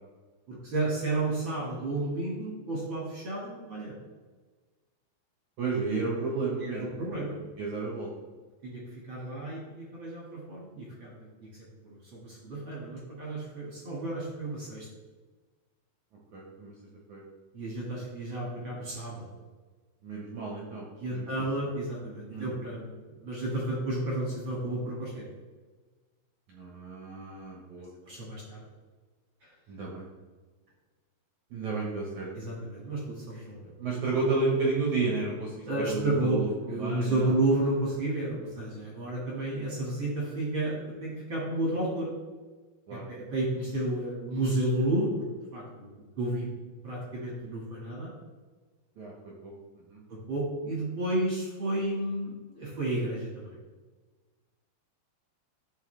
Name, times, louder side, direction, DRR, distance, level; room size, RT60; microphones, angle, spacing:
voice 1, 0.5-3.9 6.6-7.4 8.6-8.8 9.1-11.1 11.8-14.9 17.5-19.2 21.0-25.2 28.1-28.6 32.3-33.7 35.7-36.4 36.7-42.1 42.9-45.2 45.5-46.5 46.8-48.1 50.1-53.6, right 1 dB, 40° right, -4 dB, 1.8 m, -32 dB
voice 2, 5.6-7.0 7.6-8.1 16.3-16.7 17.1-17.2 20.0-21.4 22.3-22.5 26.5-27.9 29.7-30.0 31.5-32.3 33.8-37.3 42.9-43.1 49.0-49.5 49.9-50.0, right 3 dB, 60° right, -3 dB, 2.1 m, -32 dB
14.0 x 4.7 x 3.4 m, 1.3 s
omnidirectional pair, 4.9 m